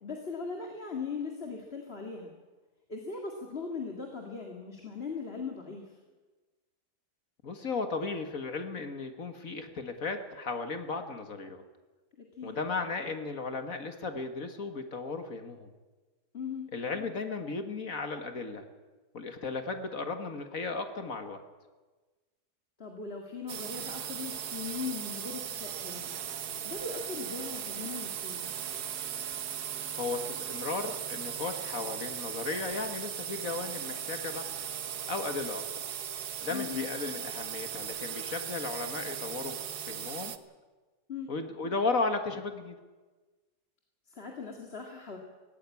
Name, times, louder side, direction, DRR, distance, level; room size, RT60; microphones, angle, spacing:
voice 1, 0.0-2.3 2.9-6.0 12.2-12.6 16.3-16.7 22.8-26.2 26.6-28.5 36.5-36.8 41.1-41.3 44.1-45.2, left 5 dB, 35° left, 1 dB, 2.2 m, -39 dB
voice 2, 7.4-11.6 12.4-15.7 16.7-18.7 19.1-21.4 30.0-34.5 35.1-35.6 36.4-39.6 39.9-40.3 41.3-42.8, left 3 dB, 50° left, 7 dB, 1.9 m, -35 dB
sound 1, 23.5-40.4, right 9 dB, 65° right, 1.5 m, -38 dB
17.5 x 16.0 x 9.7 m, 1.3 s
omnidirectional pair, 1.8 m